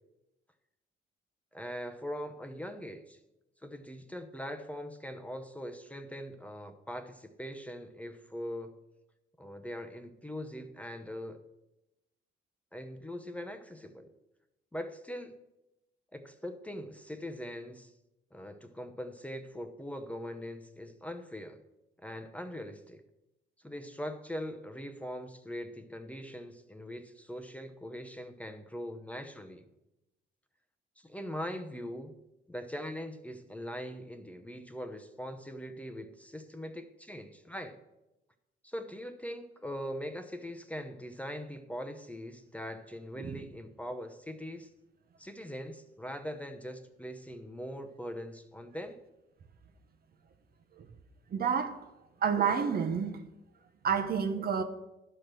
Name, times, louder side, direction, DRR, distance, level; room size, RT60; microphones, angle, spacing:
voice 1, 1.5-3.2 3.6-8.8 9.4-11.4 12.7-14.1 14.7-15.3 16.1-17.9 18.3-21.6 22.0-23.0 23.6-29.7 31.0-32.1 32.5-37.8 38.6-44.7 45.2-49.0, equal, 5° left, 0.8 m, -41 dB
voice 2, 51.3-51.8 52.2-53.2 53.8-54.6, right 6 dB, 50° right, 0.9 m, -29 dB
11.0 x 4.9 x 6.1 m
cardioid pair, 90°, 20 cm